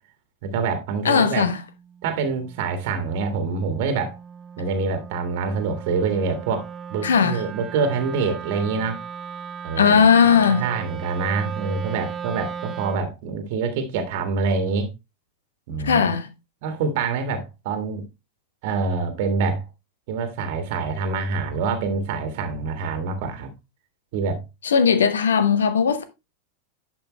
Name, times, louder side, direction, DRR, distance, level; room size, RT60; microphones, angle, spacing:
voice 1, 0.4-1.5 2.0-4.2 4.6-9.0 9.6-10.0 10.3-14.9 15.7-16.1 16.6-18.0 18.6-19.6 20.1-23.5 24.1-24.4, right 4 dB, 50° right, 1.6 m, -26 dB
voice 2, 1.0-1.6 7.0-7.4 9.8-10.6 15.8-16.3 24.6-26.0, left 6 dB, 65° left, 1.1 m, -18 dB
Wind instrument woodwind instrument, 1.5-13.1, right 7 dB, 20° right, 0.7 m, -37 dB
10.5 x 5.6 x 3.0 m
figure-of-eight pair, 90°, 0 cm